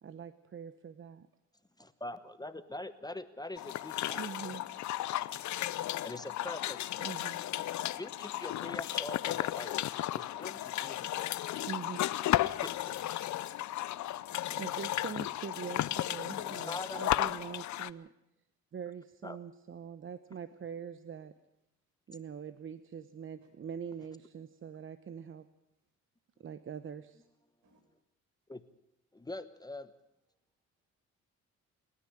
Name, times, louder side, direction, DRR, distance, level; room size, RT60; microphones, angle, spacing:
voice 1, 0.0-1.3 4.2-4.6 7.0-7.4 11.6-12.1 14.6-18.1 18.7-21.3 22.1-25.5 26.4-27.2, right 7 dB, 45° right, 0.9 m, -43 dB
voice 2, 1.8-4.3 6.0-7.1 8.0-11.4 12.6-13.0 16.7-17.3 19.2-19.4 28.5-28.6 29.1-29.9, left 2 dB, 15° left, 1.0 m, -44 dB
sound 1, 3.6-17.9, left 14 dB, 70° left, 0.7 m, -34 dB
voice 3, 14.1-14.7 15.5-15.9 16.3-16.5 27.6-27.8, right 1 dB, 70° right, 5.5 m, -52 dB
27.0 x 9.9 x 10.0 m
cardioid pair, 90°, 30 cm